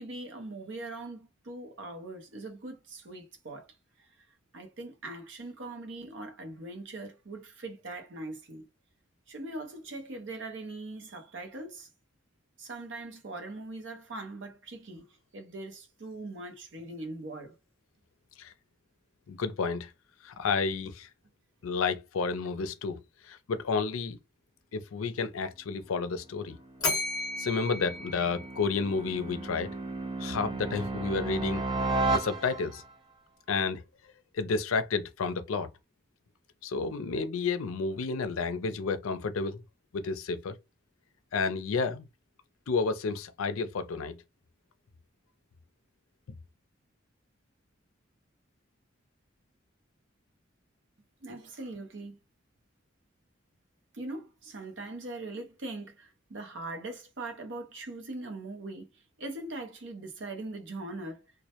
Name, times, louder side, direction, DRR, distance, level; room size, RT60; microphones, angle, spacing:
voice 1, 0.0-3.7 4.0-4.3 4.5-8.6 9.3-11.9 12.6-15.1 15.3-17.5 51.2-52.2 53.9-61.2, right 2 dB, 60° right, 0.7 m, -41 dB
voice 2, 19.3-19.9 20.2-21.1 21.6-24.2 24.7-26.6 27.4-29.7 30.2-31.6 31.9-32.8 33.5-33.8 34.3-35.7 36.6-39.6 39.9-40.6 41.3-42.0 42.7-44.2, left 4 dB, 90° left, 0.4 m, -31 dB
sound 1, 26.5-32.9, right 3 dB, 20° right, 0.3 m, -34 dB
Bell, 26.8-29.1, left 2 dB, 20° left, 0.8 m, -34 dB
2.1 x 2.1 x 2.8 m
head